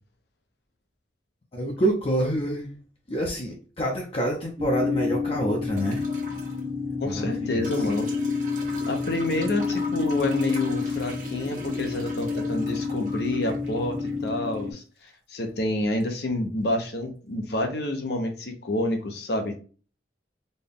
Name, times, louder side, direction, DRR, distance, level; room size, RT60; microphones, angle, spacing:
voice 1, 1.5-2.7 3.1-6.1 7.0-7.9, right 1 dB, 30° left, -1 dB, 0.6 m, -27 dB
sound 1, 4.6-14.7, left 4 dB, 30° right, 0.5 m, -29 dB
sound 2, 5.8-6.6 7.6-14.6 16.0-16.1, equal, 45° right, 1.0 m, -40 dB
voice 2, 7.0-8.1 8.9-19.6, left 1 dB, 65° left, 5 dB, 0.8 m, -28 dB
4.2 x 2.3 x 3.5 m, 0.37 s
head